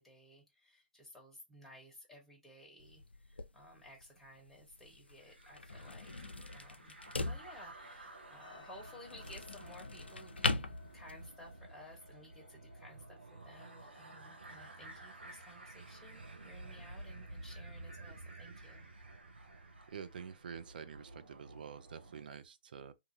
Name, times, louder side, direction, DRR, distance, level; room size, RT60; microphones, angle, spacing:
voice 1, 0.0-18.9, equal, 5° left, 0.9 m, -56 dB
sound 1, 2.8-11.5, left 3 dB, 85° left, 0.4 m, -41 dB
sound 2, 5.2-22.2, right 2 dB, 75° right, 0.8 m, -53 dB
sound 3, 8.4-17.4, left 6 dB, 55° left, 0.8 m, -63 dB
voice 2, 19.9-22.9, right 7 dB, 55° right, 0.4 m, -48 dB
2.6 x 2.5 x 2.5 m
figure-of-eight pair, 120°, 6 cm